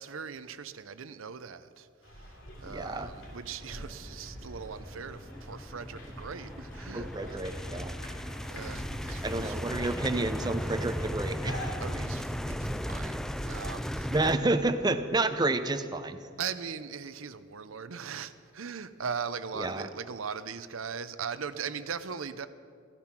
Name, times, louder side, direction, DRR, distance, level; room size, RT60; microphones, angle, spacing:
voice 1, 0.0-2.3 2.6-7.5 8.5-9.9 11.8-14.1 16.4-22.5, right 6 dB, 80° right, 0.7 m, -40 dB
sound 1, 2.0-14.6, equal, 65° left, 2.7 m, -46 dB
sound 2, 2.6-14.4, equal, ahead, 0.3 m, -37 dB
voice 2, 2.6-3.1 6.9-8.0 9.2-11.7 14.1-16.2 19.5-19.9, right 2 dB, 20° right, 0.7 m, -30 dB
15.0 x 14.5 x 6.0 m
head